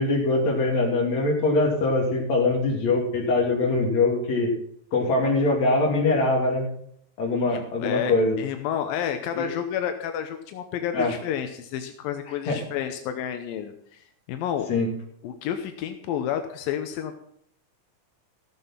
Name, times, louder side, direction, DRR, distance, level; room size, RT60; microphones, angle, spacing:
voice 1, 0.0-4.5 4.9-6.6 7.2-8.4 9.4-9.5 10.9-11.1 12.5-12.6 14.7-14.9, left 2 dB, 50° left, 0 dB, 3.8 m, -23 dB
voice 2, 7.5-14.7 15.2-17.2, left 9 dB, 85° left, 7 dB, 2.7 m, -30 dB
14.5 x 7.6 x 5.7 m, 0.69 s
omnidirectional pair, 4.0 m